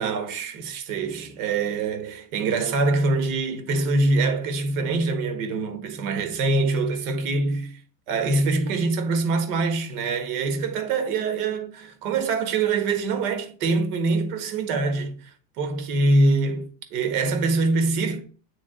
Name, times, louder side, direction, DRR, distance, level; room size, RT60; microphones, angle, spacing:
voice 1, 0.0-7.8 8.1-18.2, right 3 dB, 85° right, 1.6 m, -24 dB
8.7 x 3.6 x 3.8 m
cardioid pair, 130°, 43 cm